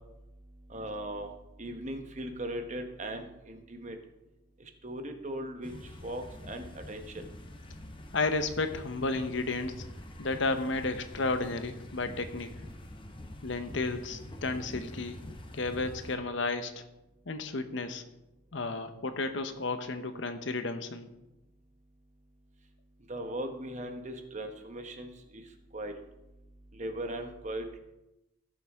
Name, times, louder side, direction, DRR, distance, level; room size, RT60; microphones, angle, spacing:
voice 1, 0.7-1.3 1.6-4.0 4.8-5.7 6.0-7.3 23.1-25.4 25.7-25.9 26.7-27.8, right 1 dB, 35° right, 6 dB, 1.1 m, -38 dB
sound 1, 5.6-16.2, left 1 dB, 25° left, 0.8 m, -46 dB
voice 2, 8.1-9.7 10.2-12.5 13.4-15.2 15.5-16.8 17.3-18.0 18.5-21.1, left 3 dB, 60° left, 9 dB, 0.8 m, -32 dB
16.0 x 7.3 x 3.6 m, 0.95 s
head